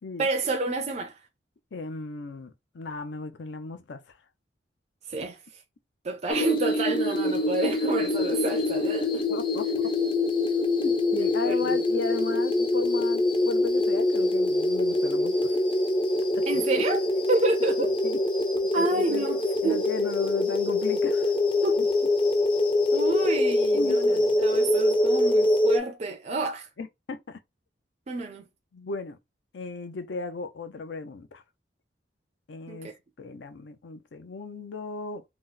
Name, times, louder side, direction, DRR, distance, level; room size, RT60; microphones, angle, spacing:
voice 1, 0.2-1.2 5.1-5.4 6.0-9.3 11.4-11.8 16.5-17.9 18.7-19.8 21.6-21.8 22.9-26.7 28.1-28.5 32.7-32.9, right 3 dB, 35° right, 0.4 m, -29 dB
voice 2, 1.7-4.0 7.3-7.4 9.3-9.7 10.8-15.6 16.3-16.6 17.8-18.2 18.8-19.3 19.6-21.3 21.8-21.9 23.7-24.4 26.8-27.4 28.7-29.2 29.5-31.4 32.5-35.2, left 3 dB, 75° left, 0.5 m, -36 dB
sound 1, 6.3-25.8, left 2 dB, 25° left, 0.5 m, -24 dB
2.9 x 2.0 x 3.7 m
head